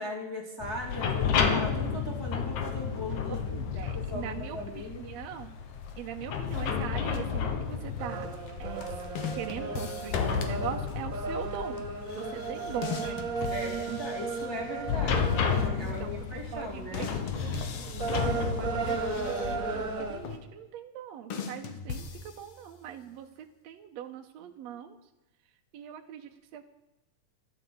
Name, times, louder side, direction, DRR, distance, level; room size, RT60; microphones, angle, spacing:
voice 1, 0.0-3.6 3.9-5.0 13.5-17.1, left 1 dB, 10° left, -2 dB, 2.0 m, -38 dB
sound 1, 0.6-20.4, left 6 dB, 75° left, 2.9 m, -32 dB
voice 2, 3.5-5.5 6.0-8.3 8.6-8.9 9.3-11.9 12.1-14.0 15.8-16.1 16.5-25.0 25.7-26.6, right 9 dB, 70° right, 3 dB, 1.9 m, -41 dB
sound 2, 8.0-16.2 16.7-17.0 17.4-20.2, right 4 dB, 35° right, 1.5 m, -35 dB
sound 3, 9.2-10.6 12.8-14.8 16.9-19.1 21.3-22.9, left 6 dB, 55° left, 2.0 m, -40 dB
13.5 x 12.5 x 7.8 m, 0.95 s
omnidirectional pair, 3.6 m